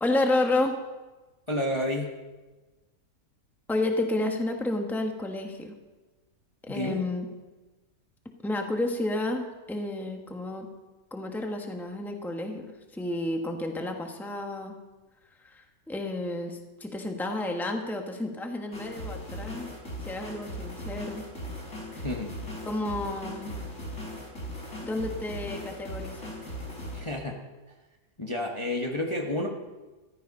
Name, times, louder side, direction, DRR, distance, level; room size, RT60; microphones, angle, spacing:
voice 1, 0.0-0.8 3.7-5.8 6.6-7.3 8.4-10.7 11.1-14.8 15.4-19.7 20.0-21.2 21.9-22.0 22.7-23.5 24.8-26.3, left 2 dB, ahead, 3 dB, 1.2 m, -31 dB
voice 2, 1.5-2.1 6.7-7.0 22.0-22.3 26.9-27.4 28.2-29.5, left 1 dB, 20° left, 0 dB, 1.2 m, -30 dB
sound 1, 18.7-27.0, equal, 55° left, 5.0 m, -38 dB
14.5 x 12.5 x 5.4 m, 1.2 s
omnidirectional pair, 1.6 m